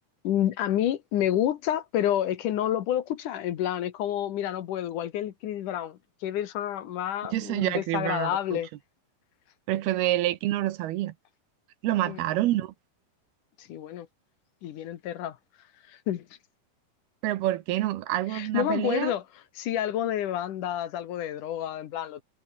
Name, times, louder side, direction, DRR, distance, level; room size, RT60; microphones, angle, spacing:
voice 1, 0.2-8.7 12.1-12.2 13.6-14.1 14.6-15.4 15.9-16.3 18.3-19.2 19.6-22.2, left 11 dB, 65° left, 2.5 m, -29 dB
voice 2, 7.3-8.6 9.7-11.1 11.8-12.7 17.2-19.1, right 15 dB, 80° right, 3.0 m, -27 dB
omnidirectional pair, 4.5 m